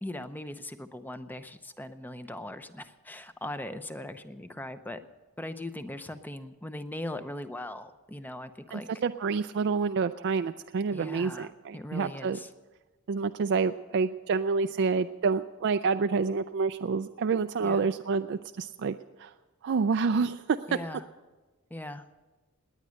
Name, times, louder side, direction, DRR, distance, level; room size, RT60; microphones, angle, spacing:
voice 1, 0.0-5.0 5.4-8.9 10.9-12.5 17.6-17.9 20.7-21.1 21.7-22.1, left 1 dB, 10° left, 10 dB, 0.6 m, -40 dB
voice 2, 8.7-12.4 13.1-19.3 19.6-20.6, right 5 dB, 50° right, 9 dB, 0.4 m, -28 dB
19.0 x 9.7 x 6.4 m, 1.2 s
head